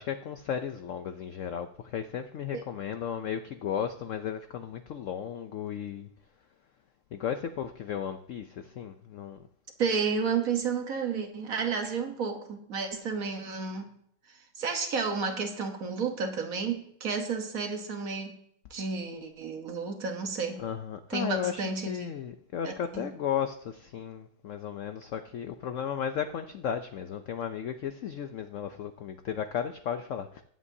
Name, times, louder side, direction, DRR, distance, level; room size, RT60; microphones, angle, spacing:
voice 1, 0.0-6.1 7.1-9.4 20.6-30.4, left 8 dB, 80° left, 9 dB, 0.7 m, -35 dB
voice 2, 9.8-13.9 14.6-18.4 18.7-20.6 21.1-22.1 22.6-23.1, right 5 dB, 55° right, 5 dB, 1.4 m, -31 dB
22.0 x 8.3 x 2.7 m, 0.70 s
omnidirectional pair, 2.0 m